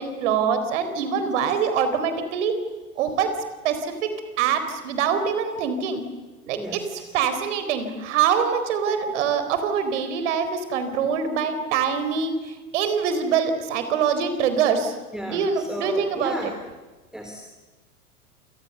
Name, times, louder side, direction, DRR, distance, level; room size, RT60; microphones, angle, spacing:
voice 1, 0.0-2.5 3.0-3.3 3.6-3.7 4.4-6.0 6.5-6.8 7.1-12.3 12.7-14.9 15.3-16.4, right 7 dB, 55° right, 9 dB, 4.3 m, -24 dB
voice 2, 6.5-7.1 15.1-16.6 17.1-17.4, equal, ahead, 3 dB, 3.0 m, -34 dB
28.0 x 28.0 x 6.9 m, 1.2 s
figure-of-eight pair, 90°, 44 cm